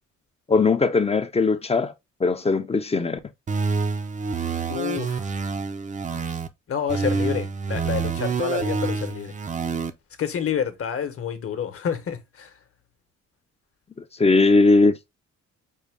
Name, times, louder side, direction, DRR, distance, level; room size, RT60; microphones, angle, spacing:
voice 1, 0.5-1.9 2.2-3.2 14.2-15.1, left 3 dB, 20° left, 0.5 m, -19 dB
sound 1, 3.5-6.5 6.9-9.9, right 4 dB, 25° right, 0.5 m, -27 dB
voice 2, 4.7-5.3 6.7-9.3 10.2-12.5, left 8 dB, 50° left, 1.0 m, -28 dB
5.4 x 2.2 x 3.4 m
cardioid pair, 90°, 30 cm